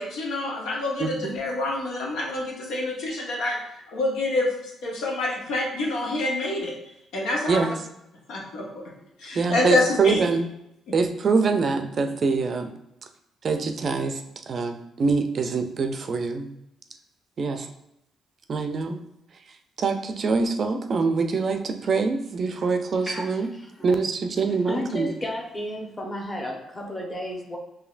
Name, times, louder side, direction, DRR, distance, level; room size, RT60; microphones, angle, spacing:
voice 1, 0.0-3.6 3.9-6.7 7.1-7.6 8.3-8.7 9.2-10.2, left 2 dB, 85° left, -2 dB, 1.1 m, -27 dB
voice 2, 1.0-1.3 7.5-7.7 9.4-10.5 10.9-12.7 13.4-16.5 17.4-17.7 18.5-19.0 19.8-23.5 23.8-25.1, right 4 dB, 50° right, 6 dB, 0.4 m, -24 dB
voice 3, 23.0-23.4 24.7-27.6, left 1 dB, 25° left, 0 dB, 1.0 m, -32 dB
4.9 x 2.7 x 2.4 m, 0.82 s
cardioid pair, 90°, 0 cm